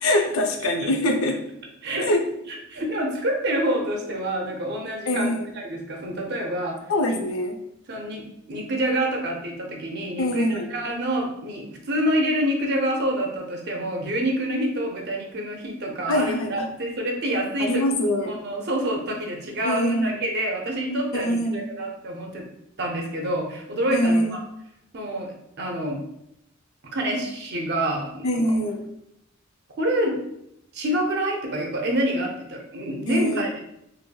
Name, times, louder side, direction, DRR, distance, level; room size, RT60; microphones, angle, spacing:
voice 1, 0.0-1.4 2.0-2.3 5.1-5.5 6.9-7.6 10.2-10.7 16.1-16.7 17.6-18.4 19.6-20.1 21.1-21.7 23.9-24.4 28.2-28.9 33.1-33.4, left 1 dB, 80° left, 4 dB, 0.5 m, -23 dB
voice 2, 2.5-6.8 7.1-7.2 7.9-17.8 18.3-22.4 22.8-24.4 24.9-26.0 26.9-28.3 29.8-30.2 30.7-33.6, right 1 dB, 55° right, 1 dB, 0.6 m, -27 dB
3.0 x 2.5 x 2.2 m, 0.79 s
head